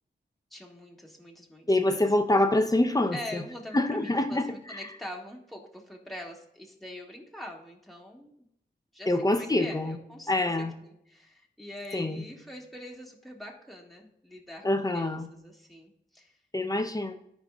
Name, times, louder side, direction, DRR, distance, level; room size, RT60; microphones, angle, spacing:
voice 1, 0.5-2.1 3.1-8.3 8.9-16.4, left 1 dB, ahead, -1 dB, 2.0 m, -44 dB
voice 2, 1.7-3.4 3.7-4.8 9.1-10.0 10.3-10.7 11.9-12.2 14.6-15.3 16.5-17.1, left 1 dB, 20° left, 6 dB, 0.9 m, -26 dB
13.0 x 5.2 x 2.5 m, 0.77 s
cardioid pair, 50°, 19 cm